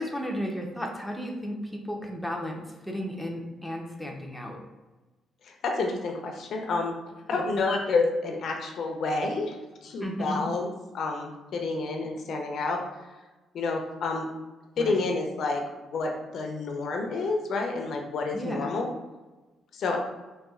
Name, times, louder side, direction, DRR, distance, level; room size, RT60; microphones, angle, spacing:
voice 1, 0.0-4.6 7.3-7.4 10.0-10.4 14.8-15.0 18.3-18.7, equal, ahead, 0 dB, 0.6 m, -34 dB
voice 2, 5.4-6.9 7.3-9.6 9.8-10.7 10.9-12.8 13.5-14.3 14.8-18.9 19.7-20.0, left 3 dB, 65° left, 2 dB, 0.6 m, -29 dB
4.1 x 2.3 x 2.4 m, 1.2 s
cardioid pair, 90°, 0 cm